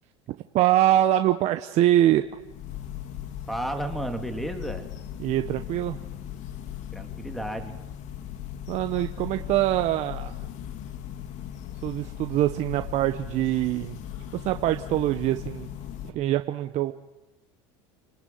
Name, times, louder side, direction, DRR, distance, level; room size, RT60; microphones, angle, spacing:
voice 1, 0.5-2.3 5.2-6.0 8.7-10.3 11.8-14.0 14.4-15.7 16.0-16.9, right 13 dB, 50° right, 8 dB, 1.2 m, -24 dB
sound 1, 2.0-16.1, left 11 dB, 55° left, 2.3 m, -38 dB
voice 2, 3.5-4.9 6.9-7.8, right 1 dB, ahead, 6 dB, 3.2 m, -32 dB
30.0 x 19.0 x 9.4 m, 0.98 s
supercardioid pair, 100°, 15 cm